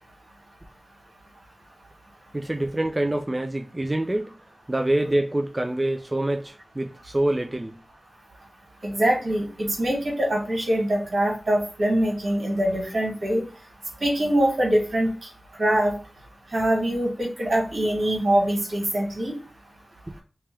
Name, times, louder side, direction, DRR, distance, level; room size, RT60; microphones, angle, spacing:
voice 1, 2.3-4.3 4.7-7.8, right 1 dB, 20° right, 0.4 m, -26 dB
voice 2, 8.8-9.5 9.8-13.4 14.0-15.1 15.6-15.9 16.5-19.3, right 1 dB, 65° right, 2.0 m, -23 dB
3.3 x 2.9 x 3.2 m
wide cardioid pair, 95°, 0 cm